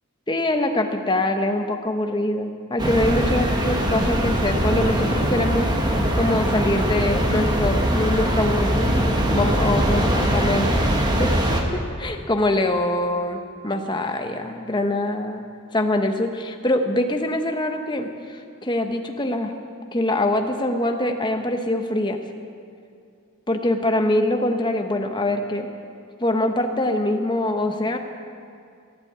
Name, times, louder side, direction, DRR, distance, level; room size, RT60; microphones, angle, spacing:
voice 1, 0.3-5.7 6.2-10.8 11.1-11.3 11.7-15.4 15.7-19.5 19.9-22.2 23.5-25.7 26.2-28.0, left 1 dB, 20° left, 5 dB, 0.8 m, -24 dB
sound 1, 2.8-11.6, equal, 20° right, 1.2 m, -21 dB
15.5 x 8.3 x 8.5 m, 2.4 s
head